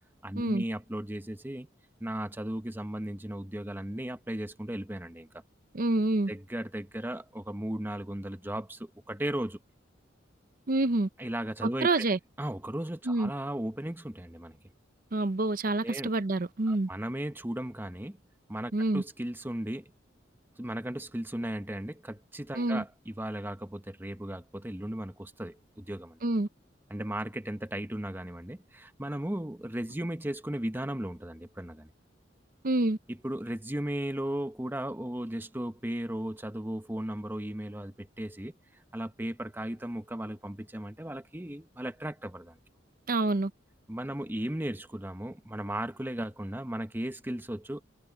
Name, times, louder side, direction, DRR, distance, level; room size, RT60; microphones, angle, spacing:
voice 1, 0.2-1.7 2.0-5.4 6.3-9.6 11.2-11.9 12.4-14.6 15.8-16.1 16.7-18.2 18.5-19.9 20.6-26.2 26.9-31.9 33.1-38.6 38.9-42.6 43.9-47.8, right 1 dB, 10° right, 1.0 m, -36 dB
voice 2, 5.7-6.3 10.7-11.1 11.8-12.2 13.1-13.3 15.1-16.9 18.7-19.0 22.5-22.8 26.2-26.5 32.6-33.0 43.1-43.5, right 2 dB, 50° right, 0.7 m, -27 dB
head